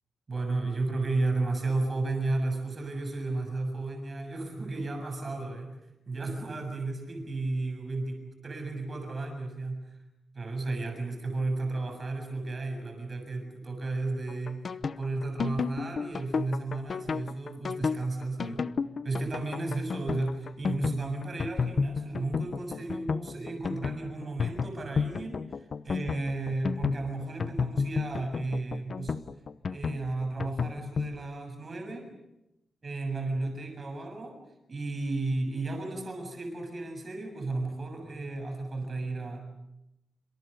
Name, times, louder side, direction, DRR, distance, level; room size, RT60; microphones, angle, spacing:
voice 1, 0.3-5.7 6.1-9.8 10.4-14.6 15.0-18.6 19.0-29.2 29.7-32.1 32.8-34.4 34.7-39.4, right 2 dB, 30° right, 5 dB, 7.0 m, -33 dB
sound 1, 14.3-31.1, left 5 dB, 45° left, 0.9 m, -31 dB
27.0 x 27.0 x 6.7 m, 0.88 s
wide cardioid pair, 170°, 0 cm